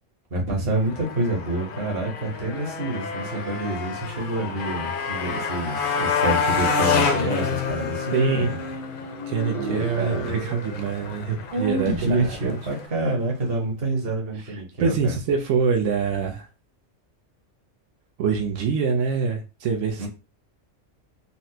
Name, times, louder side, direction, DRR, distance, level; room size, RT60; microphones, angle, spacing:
voice 1, 0.3-8.5 9.5-10.3 11.5-15.1 20.0-20.1, right 2 dB, 55° right, 0 dB, 1.2 m, -27 dB
Motorcycle, 0.8-12.9, left 5 dB, 55° left, 0.6 m, -28 dB
sound 1, 7.6-13.5, right 3 dB, 35° right, 0.6 m, -39 dB
voice 2, 8.1-8.5 9.3-12.6 14.4-16.5 18.2-20.1, right 5 dB, 90° right, 3 dB, 1.0 m, -25 dB
4.1 x 2.0 x 2.7 m, 0.30 s
omnidirectional pair, 1.2 m